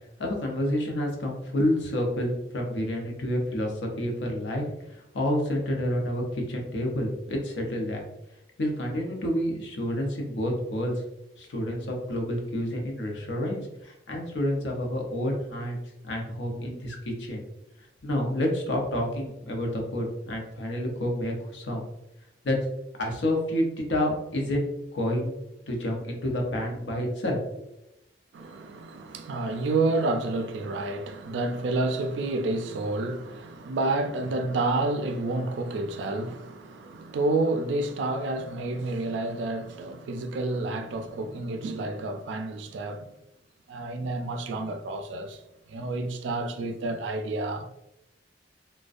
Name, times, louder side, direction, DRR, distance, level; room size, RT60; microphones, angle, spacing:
voice 1, 0.2-8.0 8.6-10.9 11.4-15.8 16.1-17.4 18.0-21.8 22.4-22.6 23.0-25.3 25.7-27.4, left 1 dB, 85° left, 0.6 m, -29 dB
voice 2, 28.3-43.1 43.7-45.4 45.7-47.7, right 2 dB, 85° right, 0.3 m, -29 dB
2.4 x 2.1 x 2.4 m
head